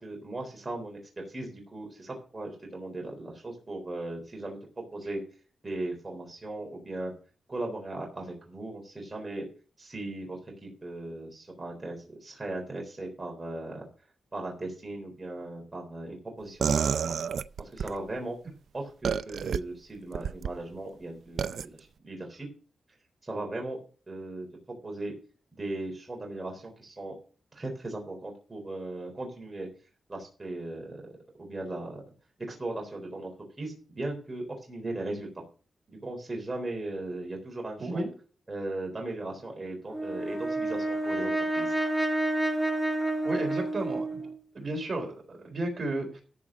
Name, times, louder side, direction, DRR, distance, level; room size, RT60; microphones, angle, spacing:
voice 1, 0.0-5.2 5.6-7.1 7.5-9.4 9.8-13.8 14.3-17.2 17.6-18.4 18.7-22.5 23.2-23.8 24.1-24.5 24.8-25.1 25.5-27.1 27.5-29.7 30.1-31.0 31.4-32.0 32.5-33.3 33.6-35.3 35.9-38.1 38.5-41.7, right 2 dB, 25° right, 0 dB, 3.8 m, -37 dB
sound 1, 16.6-18.0 19.0-19.6 20.1-20.5 21.4-21.7, right 7 dB, 75° right, 0.4 m, -28 dB
voice 2, 37.8-38.1 43.2-44.3 44.5-46.2, right 2 dB, 45° right, 2 dB, 4.0 m, -33 dB
Brass instrument, 39.9-44.4, right 2 dB, 5° right, 1.5 m, -29 dB
13.5 x 5.1 x 6.3 m, 0.39 s
wide cardioid pair, 125°, 0 cm